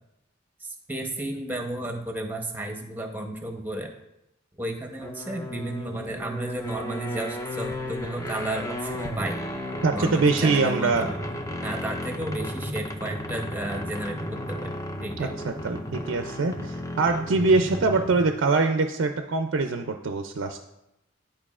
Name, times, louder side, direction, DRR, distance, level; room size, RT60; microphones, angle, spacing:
voice 1, 0.6-3.9 4.6-9.4 9.9-11.2 11.6-14.2 14.5-14.7 15.0-15.3, right 1 dB, 10° right, 3 dB, 0.8 m, -33 dB
sound 1, 5.0-18.4, left 1 dB, 15° left, 0.5 m, -34 dB
voice 2, 9.8-11.1 15.2-20.6, right 3 dB, 70° right, 6 dB, 0.4 m, -24 dB
11.0 x 4.5 x 2.4 m, 0.88 s
head